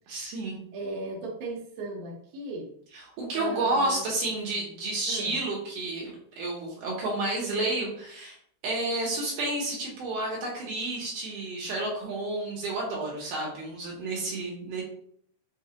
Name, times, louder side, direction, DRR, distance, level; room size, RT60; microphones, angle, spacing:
voice 1, 0.1-0.6 2.9-8.4 8.6-14.8, right 2 dB, 75° right, -3 dB, 2.0 m, -31 dB
voice 2, 0.7-2.7 3.3-4.0 5.1-5.4, right 2 dB, 90° right, -2 dB, 1.7 m, -36 dB
6.4 x 2.3 x 2.8 m, 0.64 s
omnidirectional pair, 4.6 m